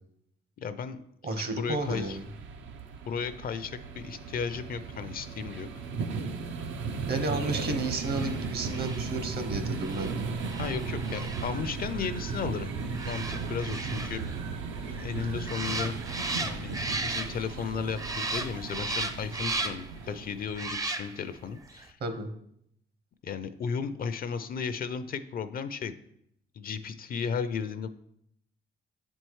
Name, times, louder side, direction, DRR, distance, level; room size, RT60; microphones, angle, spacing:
voice 1, 0.6-1.0 1.3-2.2 3.1-5.7 7.3-7.8 10.6-14.2 14.8-15.9 16.4-22.0 23.2-25.9 26.6-27.9, left 6 dB, 50° left, 12 dB, 0.4 m, -35 dB
voice 2, 1.2-2.3 7.1-10.3 22.0-22.3, right 2 dB, 55° right, 6 dB, 1.0 m, -32 dB
sound 1, 1.7-20.8, right 4 dB, 75° right, 0.6 m, -36 dB
sound 2, 7.9-17.7 18.0-20.0 20.5-21.4 21.7-21.8, right 3 dB, 15° right, 0.5 m, -37 dB
7.5 x 4.4 x 3.1 m, 0.73 s
cardioid pair, 90°, 20 cm